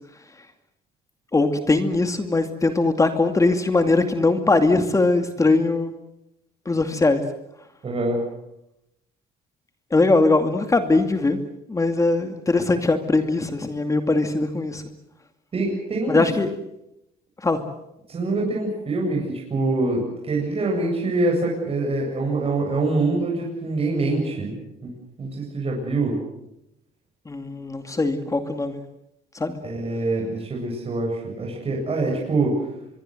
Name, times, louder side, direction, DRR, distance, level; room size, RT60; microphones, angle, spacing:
voice 1, 1.3-5.9 6.7-7.2 9.9-11.4 11.7-14.8 16.1-16.5 17.4-17.6 27.3-28.8 29.3-29.6, left 3 dB, 20° left, 7 dB, 2.4 m, -21 dB
voice 2, 7.8-8.2 15.5-16.2 18.1-24.5 24.8-24.9 25.2-26.2 29.6-32.6, right 2 dB, 35° right, -1 dB, 8.0 m, -24 dB
24.5 x 23.0 x 7.9 m, 0.85 s
cardioid pair, 110°, 17 cm